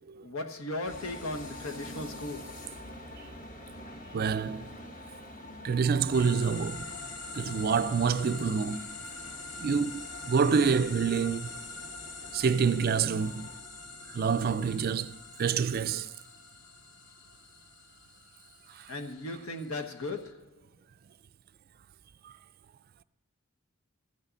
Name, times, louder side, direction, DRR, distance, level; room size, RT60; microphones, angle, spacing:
voice 1, 0.2-2.5 18.9-20.5, left 2 dB, 80° left, 1.2 m, -37 dB
sound 1, 0.8-13.6, left 1 dB, 40° left, 1.3 m, -47 dB
voice 2, 4.1-4.7 5.6-6.9 7.3-8.8 9.6-11.5 12.3-13.5 14.1-15.1 15.4-16.1, right 6 dB, 45° right, 0.3 m, -27 dB
sound 2, 6.1-20.3, left 3 dB, 55° left, 1.1 m, -44 dB
14.0 x 6.5 x 7.1 m
head